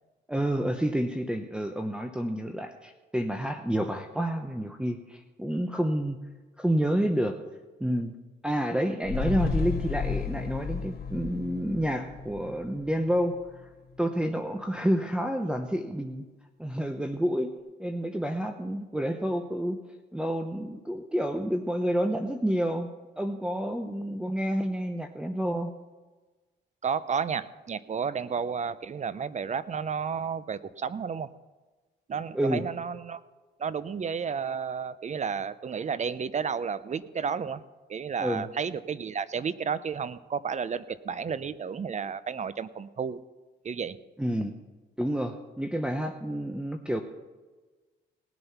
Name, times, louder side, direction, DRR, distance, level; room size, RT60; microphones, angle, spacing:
voice 1, 0.3-6.2 6.6-7.4 7.8-8.1 8.4-13.4 14.0-16.2 16.6-17.5 17.8-19.8 20.1-22.9 23.2-25.7 32.3-32.7 38.2-38.5 44.2-44.5 45.0-47.0, equal, 5° right, 3 dB, 0.9 m, -29 dB
sound 1, 9.0-13.6 13.9-14.0, left 6 dB, 50° left, 2.5 m, -33 dB
voice 2, 26.8-31.3 32.1-33.2 33.6-37.6 37.9-43.2 43.6-44.0, right 6 dB, 35° right, 16 dB, 0.7 m, -32 dB
18.5 x 7.9 x 5.8 m, 1.3 s
cardioid pair, 90°, 20 cm